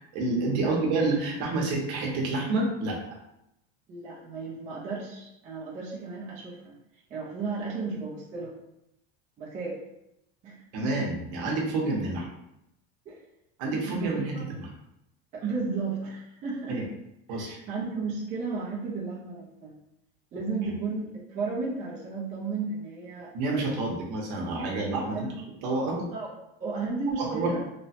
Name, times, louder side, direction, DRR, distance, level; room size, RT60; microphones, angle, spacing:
voice 1, 0.1-3.0 10.7-12.3 13.6-14.7 16.7-16.8 17.3-17.6 23.3-25.3 25.6-26.1 27.2-27.5, right 2 dB, 60° right, -1 dB, 0.8 m, -28 dB
voice 2, 3.9-6.7 7.1-8.5 9.4-9.8 10.4-11.0 13.1-13.2 13.8-14.4 15.3-16.8 17.3-19.7 20.3-23.8 25.0-25.3 26.1-26.3 26.6-27.7, right 4 dB, 25° right, -6 dB, 0.5 m, -34 dB
3.0 x 2.1 x 2.8 m, 0.83 s
cardioid pair, 165°, 29 cm